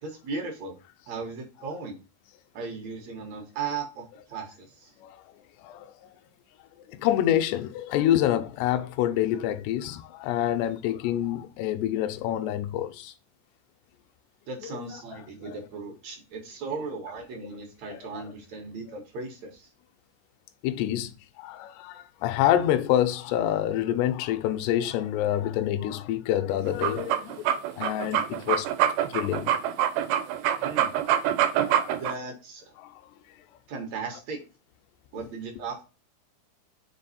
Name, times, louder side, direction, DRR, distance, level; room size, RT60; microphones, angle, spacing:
voice 1, 0.0-0.8 1.1-2.0 2.5-4.9 14.5-19.7 30.6-30.9 31.9-32.6 33.7-34.4 35.1-35.8, right 4 dB, 65° right, 1.8 m, -37 dB
voice 2, 5.6-6.1 6.9-13.1 14.6-14.7 15.4-15.6 17.9-18.3 20.6-28.7 29.1-29.5 31.5-32.0 32.8-33.0, left 12 dB, 85° left, 2.7 m, -27 dB
sound 1, 26.7-32.1, right 10 dB, 80° right, 2.4 m, -25 dB
6.0 x 4.0 x 4.0 m
omnidirectional pair, 4.7 m